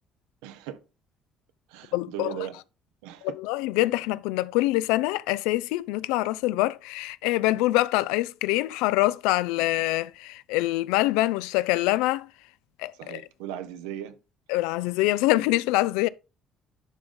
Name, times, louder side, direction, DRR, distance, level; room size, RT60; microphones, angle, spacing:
voice 1, 0.4-0.8 1.7-2.6 3.0-3.4 9.6-9.7 12.9-14.2, right 11 dB, 85° right, 0.8 m, -38 dB
voice 2, 1.9-2.3 3.2-12.3 12.8-13.2 14.5-16.1, left 18 dB, 80° left, 0.3 m, -25 dB
11.5 x 3.8 x 3.7 m
hypercardioid pair, 60°, 0 cm